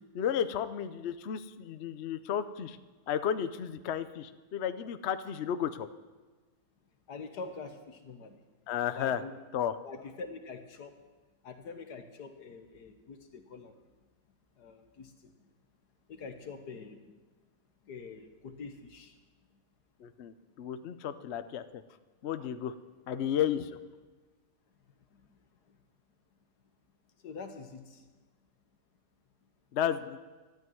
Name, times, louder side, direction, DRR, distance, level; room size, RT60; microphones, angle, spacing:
voice 1, 0.1-2.8 3.1-5.9 8.7-9.2 9.5-9.7 20.0-21.8 22.2-22.7 23.1-23.8 29.7-30.2, left 9 dB, 55° left, 11 dB, 0.8 m, -33 dB
voice 2, 7.1-8.4 9.0-9.3 9.8-11.0 11.4-13.7 14.6-15.3 16.1-17.1 17.8-19.1 27.2-28.0, left 4 dB, 80° left, 6 dB, 1.9 m, -45 dB
13.0 x 9.3 x 9.3 m, 1.3 s
omnidirectional pair, 1.7 m